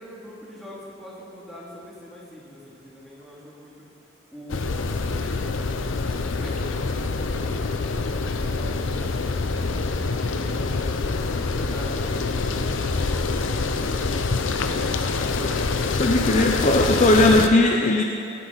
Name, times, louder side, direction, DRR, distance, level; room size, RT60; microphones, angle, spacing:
voice 1, 0.0-3.9 4.3-5.7 6.4-8.0 8.5-12.3, left 1 dB, ahead, -7 dB, 2.6 m, -44 dB
sound 1, 4.5-17.5, left 3 dB, 90° left, 0.7 m, -25 dB
voice 2, 16.0-18.0, left 2 dB, 35° left, 2 dB, 0.6 m, -18 dB
18.0 x 10.0 x 4.1 m, 2.4 s
head